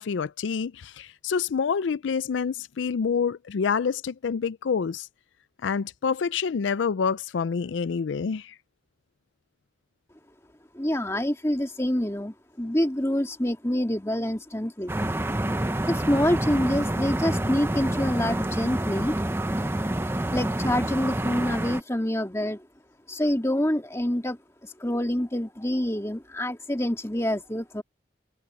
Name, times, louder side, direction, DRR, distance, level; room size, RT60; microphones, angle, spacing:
voice 1, 0.0-5.1 5.6-8.5, left 6 dB, 85° left, 0.4 m, -27 dB
voice 2, 10.7-15.0 15.9-19.2 20.3-22.7 23.1-27.8, left 1 dB, 15° left, 2.3 m, -26 dB
sound 1, 14.9-21.8, right 1 dB, 15° right, 0.7 m, -28 dB
head